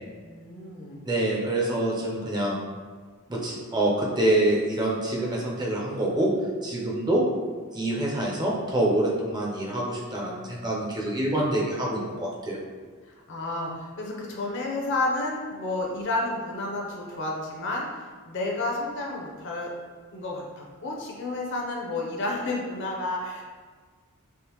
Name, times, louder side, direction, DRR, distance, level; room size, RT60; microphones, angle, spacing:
voice 1, 0.2-1.0 13.1-17.9 18.3-19.7 20.1-23.4, left 2 dB, 55° left, -1 dB, 0.6 m, -31 dB
voice 2, 1.1-2.6 3.3-6.3 6.6-7.2 7.7-12.6, right 1 dB, 20° right, -3 dB, 0.4 m, -26 dB
3.5 x 2.5 x 2.9 m, 1.5 s
head